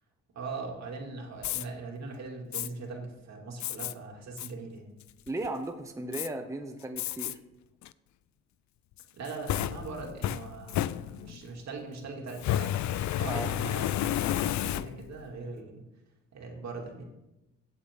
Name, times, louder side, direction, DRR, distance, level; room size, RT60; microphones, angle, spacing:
voice 1, 0.3-4.9 9.1-12.8 13.2-15.8 16.3-17.0, right 3 dB, 60° right, 0 dB, 2.8 m, -40 dB
Fire, 1.4-1.6 2.5-2.7 3.6-3.9 4.4-4.5 5.0-5.5 6.1-6.3 7.0-7.3 7.8-7.9 9.0-11.5 12.3-15.2, left 12 dB, 70° left, 0.5 m, -31 dB
voice 2, 5.3-7.4 13.3-13.5, right 2 dB, 10° right, 5 dB, 0.9 m, -36 dB
16.0 x 8.0 x 3.8 m, 0.98 s
cardioid pair, 90°, 30 cm